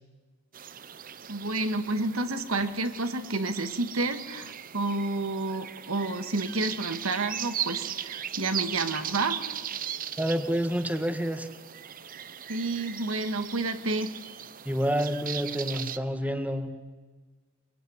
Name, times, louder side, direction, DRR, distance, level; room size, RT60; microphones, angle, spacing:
sound 1, 0.5-16.0, right 10 dB, 40° right, 0.8 m, -38 dB
voice 1, 1.3-9.6 12.5-14.1, right 2 dB, 75° right, 8 dB, 2.2 m, -30 dB
voice 2, 10.2-11.5 14.7-16.7, equal, 5° right, 7 dB, 1.8 m, -28 dB
25.0 x 23.0 x 9.8 m, 1.4 s
head